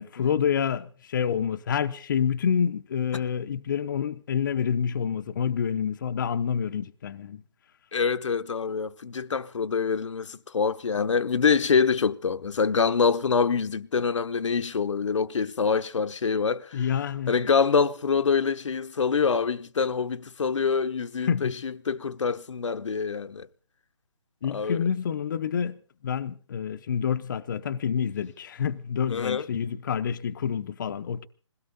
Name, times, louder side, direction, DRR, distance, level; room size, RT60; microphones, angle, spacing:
voice 1, 0.0-7.4 16.7-17.3 21.2-21.5 24.4-31.3, left 7 dB, 40° left, 0.7 m, -28 dB
voice 2, 7.9-16.8 17.3-23.5 24.5-24.8 29.1-29.5, left 5 dB, 70° left, 0.9 m, -25 dB
21.0 x 17.0 x 4.0 m
hypercardioid pair, 160°, 16 cm